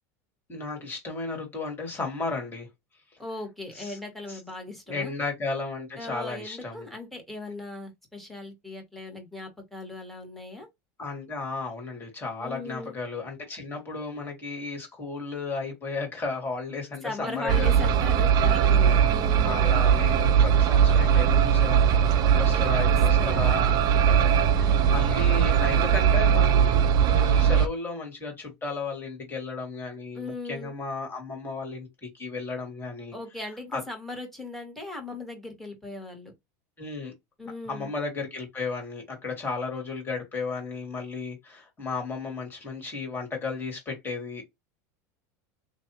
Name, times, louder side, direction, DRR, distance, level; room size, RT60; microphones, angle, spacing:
voice 1, 0.5-2.7 3.7-4.0 4.3-4.4 4.9-6.9 11.0-17.7 18.4-19.1 19.4-33.2 33.7-33.8 36.8-37.1 37.7-44.4, left 3 dB, 25° left, 2.2 m, -34 dB
voice 2, 3.2-5.1 6.0-10.7 12.4-13.0 17.0-19.6 22.5-23.6 24.6-25.3 30.2-30.7 33.1-36.3 37.4-37.9, left 2 dB, ahead, 1.9 m, -38 dB
sound 1, 17.5-27.7, right 8 dB, 45° right, 0.5 m, -20 dB
3.3 x 2.5 x 3.0 m
supercardioid pair, 115°, 9 cm